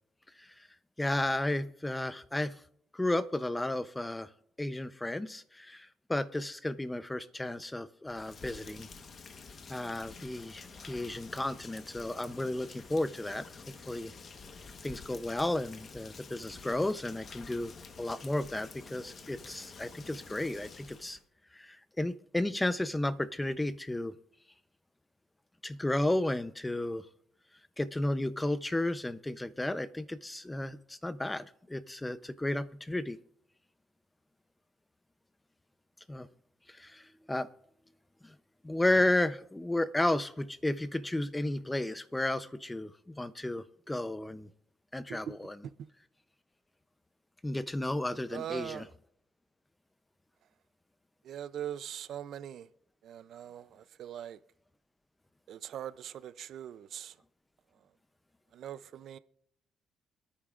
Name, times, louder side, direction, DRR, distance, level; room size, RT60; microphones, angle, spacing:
voice 1, 1.0-2.6 2.9-4.3 4.6-8.9 9.7-14.1 14.8-17.7 18.0-21.2 21.5-24.1 25.6-27.1 27.8-33.2 36.1-36.3 36.7-37.5 38.2-38.4 38.6-44.5 44.9-45.6 47.4-48.8, left 1 dB, 10° left, 0.6 m, -33 dB
Rain, 8.0-21.2, left 4 dB, 45° left, 1.2 m, -49 dB
voice 2, 48.3-48.9 51.2-52.7 53.0-54.4 55.5-57.1 58.5-59.2, right 10 dB, 70° right, 0.5 m, -41 dB
25.5 x 9.7 x 2.5 m
cardioid pair, 90°, 0 cm